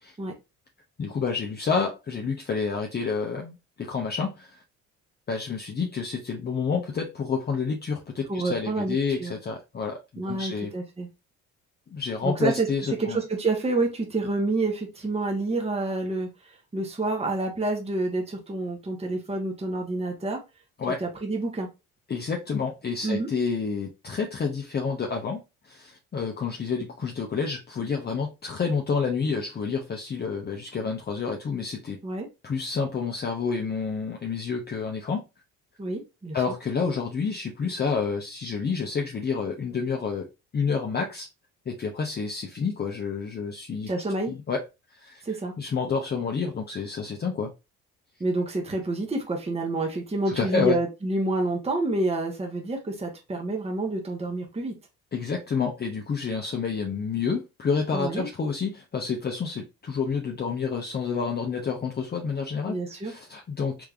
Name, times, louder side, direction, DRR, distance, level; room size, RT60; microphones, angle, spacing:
voice 1, 1.0-4.6 5.3-10.7 11.9-13.2 20.8-21.0 22.1-32.0 32.4-35.2 36.3-41.3 41.7-43.9 44.3-44.6 44.9-47.5 50.3-50.8 55.1-63.8, left 5 dB, 30° left, 0.7 m, -29 dB
voice 2, 8.3-9.3 10.2-11.1 12.2-12.7 13.0-20.4 21.0-21.7 23.0-23.3 32.0-32.3 35.8-36.4 43.9-44.3 45.2-45.5 48.2-54.7 57.9-58.3 62.7-63.1, right 2 dB, 15° right, 1.0 m, -28 dB
3.4 x 3.3 x 2.4 m
supercardioid pair, 70°, 35 cm